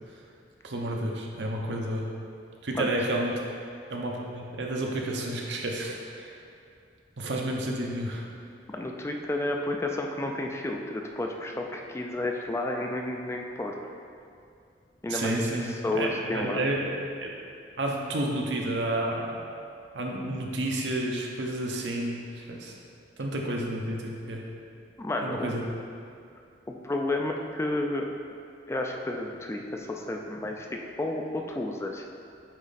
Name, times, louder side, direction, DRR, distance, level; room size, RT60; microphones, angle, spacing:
voice 1, 0.6-2.1 2.6-3.4 3.9-6.4 7.2-8.3 15.1-16.8 17.2-17.3 17.8-19.4 19.9-22.8 23.2-24.4 25.2-25.6, right 1 dB, 75° right, -1 dB, 0.8 m, -30 dB
voice 2, 8.7-13.9 15.0-15.5 15.8-16.6 25.0-25.5 26.7-28.1 28.7-32.0, left 2 dB, 15° left, 2 dB, 0.4 m, -31 dB
8.8 x 3.1 x 4.1 m, 2.4 s
head